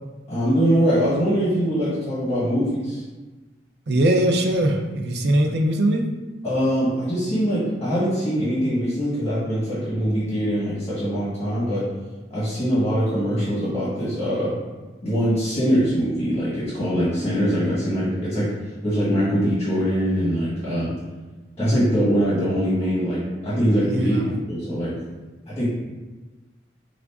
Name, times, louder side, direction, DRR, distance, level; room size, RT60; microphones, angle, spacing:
voice 1, 0.3-3.0 6.4-11.8 12.3-14.5 15.0-18.5 18.8-20.9 21.6-24.9 25.5-25.6, equal, 20° left, -10 dB, 1.3 m, -22 dB
voice 2, 3.9-6.0 23.9-24.3, right 1 dB, 65° right, 3 dB, 0.5 m, -21 dB
4.9 x 2.5 x 3.5 m, 1.2 s
head